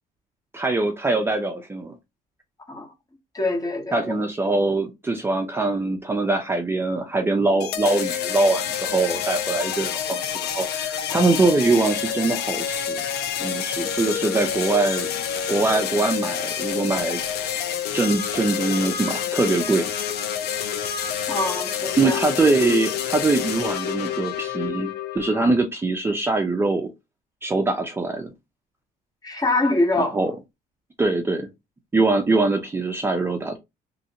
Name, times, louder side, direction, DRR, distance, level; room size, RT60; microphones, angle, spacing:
voice 1, 0.5-2.0 3.9-13.0 13.4-15.1 15.5-17.2 17.9-19.9 22.0-26.9 27.4-28.3 30.0-30.3 31.0-31.5 31.9-33.6, right 3 dB, 15° right, 0.5 m, -23 dB
voice 2, 3.3-4.1 21.3-22.2 29.2-30.2, left 2 dB, 20° left, 1.0 m, -24 dB
sound 1, 7.6-25.6, left 9 dB, 75° left, 0.6 m, -28 dB
3.2 x 2.5 x 2.8 m
cardioid pair, 110°, 17 cm